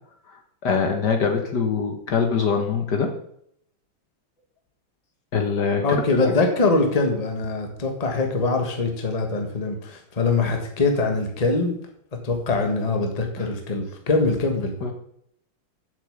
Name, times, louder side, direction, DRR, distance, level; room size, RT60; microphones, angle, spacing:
voice 1, 0.6-3.1 5.3-6.4 13.4-13.5 14.8-14.9, left 5 dB, 55° left, 3 dB, 1.8 m, -23 dB
voice 2, 5.8-11.8 12.2-14.7, left 3 dB, 20° left, 3 dB, 1.4 m, -23 dB
7.3 x 6.9 x 8.1 m, 0.70 s
omnidirectional pair, 2.3 m